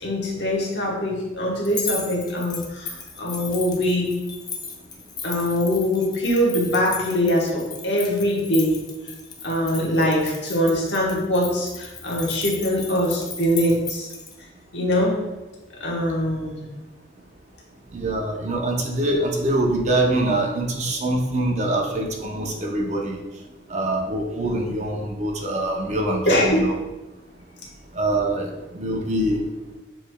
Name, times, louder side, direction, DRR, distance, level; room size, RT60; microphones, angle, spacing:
voice 1, 0.0-4.1 5.2-8.8 9.4-14.1 14.7-15.2 15.8-16.6 26.3-26.7, left 1 dB, 70° left, -3 dB, 1.1 m, -23 dB
sound 1, 1.6-14.3, left 5 dB, 20° left, 0.4 m, -35 dB
voice 2, 17.9-23.2 23.7-26.8 28.0-29.4, right 1 dB, 35° right, 0 dB, 0.5 m, -24 dB
6.8 x 3.1 x 2.2 m, 1.1 s
head